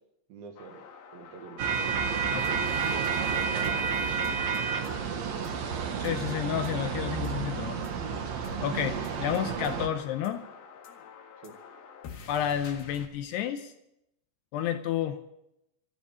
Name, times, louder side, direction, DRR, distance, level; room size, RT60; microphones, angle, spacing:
voice 1, 0.3-0.8 1.1-1.7 2.8-5.3 11.4-11.5, right 5 dB, 60° right, 4 dB, 3.1 m, -47 dB
sound 1, 0.6-13.1, left 6 dB, 60° left, 3.4 m, -49 dB
sound 2, 1.6-9.9, right 6 dB, 85° right, 1.5 m, -30 dB
voice 2, 6.0-7.9 8.6-10.4 12.3-13.7 14.5-15.3, left 10 dB, 80° left, 8 dB, 2.6 m, -31 dB
13.5 x 12.5 x 8.2 m, 0.83 s
omnidirectional pair, 5.3 m